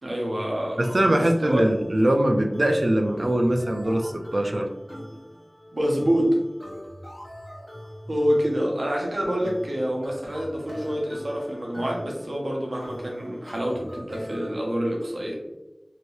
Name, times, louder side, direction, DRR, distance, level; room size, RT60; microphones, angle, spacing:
voice 1, 0.0-1.6 5.7-6.4 8.1-15.3, equal, 85° right, -1 dB, 0.7 m, -27 dB
sound 1, 0.8-14.5, equal, 20° left, 0.9 m, -42 dB
voice 2, 0.8-4.7, right 1 dB, 60° right, 4 dB, 0.4 m, -22 dB
2.8 x 2.6 x 3.1 m, 0.98 s
wide cardioid pair, 45°, 0 cm